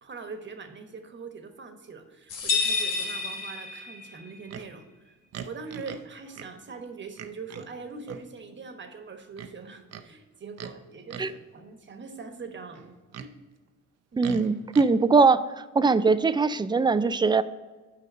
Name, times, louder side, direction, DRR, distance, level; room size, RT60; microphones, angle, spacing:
voice 1, 0.0-5.2 5.5-12.8 13.2-13.3 14.1-14.3, right 4 dB, 40° right, 6 dB, 1.2 m, -42 dB
sound 1, 2.3-4.2, left 4 dB, 90° left, 1.3 m, -29 dB
Livestock farm animals working animals, 4.5-4.7 5.3-6.1 6.3-6.5 7.2-7.7 8.0-8.3 9.3-10.1 10.5-10.8 11.1-11.4 12.7-13.3 14.2-14.9, right 7 dB, 55° right, 0.7 m, -41 dB
voice 2, 14.2-15.4 15.7-17.4, right 4 dB, 15° right, 14 dB, 0.3 m, -21 dB
6.8 x 5.2 x 6.1 m, 1.3 s
cardioid pair, 90°, 30 cm